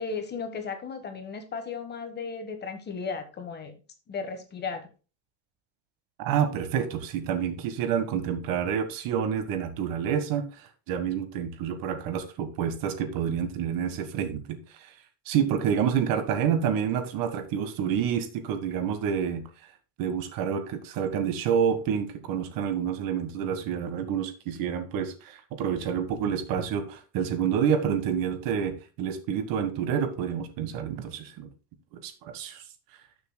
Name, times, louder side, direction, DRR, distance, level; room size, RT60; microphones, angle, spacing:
voice 1, 0.0-3.8 4.1-4.9, left 5 dB, 25° left, 1.4 m, -35 dB
voice 2, 6.2-14.9 15.2-19.4 20.0-31.5 32.0-32.6, right 8 dB, 55° right, 1.6 m, -28 dB
12.5 x 6.9 x 2.2 m
cardioid pair, 170°, 41 cm